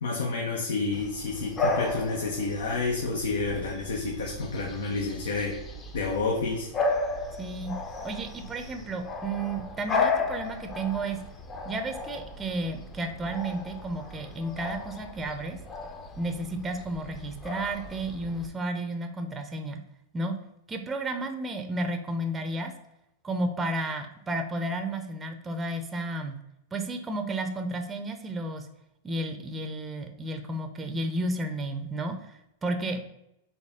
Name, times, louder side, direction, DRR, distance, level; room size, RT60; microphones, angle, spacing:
voice 1, 0.0-5.6 5.9-6.7, left 3 dB, 85° left, 0 dB, 0.8 m, -29 dB
Bark / Bird vocalization bird call bird song, 0.9-18.5, left 3 dB, 25° left, 0.6 m, -34 dB
voice 2, 7.4-7.7 8.0-11.2 11.6-15.6 16.2-19.8 20.1-20.4 20.7-22.7 23.2-26.4 26.7-28.7 29.0-33.0, right 2 dB, 15° right, 5 dB, 0.5 m, -32 dB
4.1 x 2.9 x 3.5 m, 0.85 s
hypercardioid pair, 125°, 0 cm